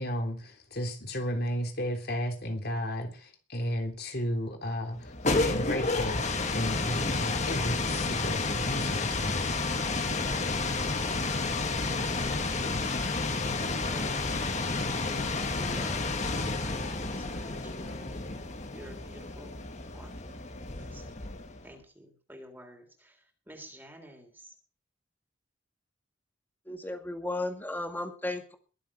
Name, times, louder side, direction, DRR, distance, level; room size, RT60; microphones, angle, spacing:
voice 1, 0.0-9.4, equal, 55° left, 3.4 m, -33 dB
sound 1, 5.0-21.7, left 3 dB, 40° left, 1.7 m, -31 dB
voice 2, 13.6-15.1 15.6-18.2 18.7-19.6 19.9-21.2 21.6-24.5, right 1 dB, 10° right, 3.6 m, -50 dB
voice 3, 26.7-28.6, left 2 dB, 10° left, 2.1 m, -34 dB
22.0 x 7.4 x 6.3 m
head